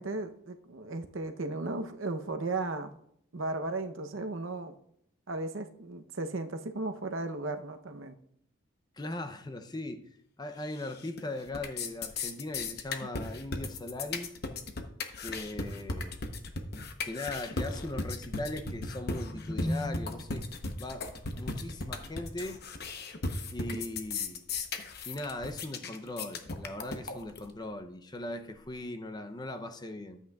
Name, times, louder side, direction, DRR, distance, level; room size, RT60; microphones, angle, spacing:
voice 1, 0.0-2.9 3.3-4.7 5.3-8.2, right 2 dB, 70° right, 0.7 m, -35 dB
voice 2, 8.9-10.1 10.4-14.3 15.2-16.1 17.0-20.5 20.8-22.6 23.5-24.4 25.1-30.2, left 1 dB, 20° left, 0.5 m, -38 dB
sound 1, 10.7-11.2 11.5-27.5, left 3 dB, 50° left, 0.8 m, -36 dB
12.5 x 8.3 x 2.3 m
head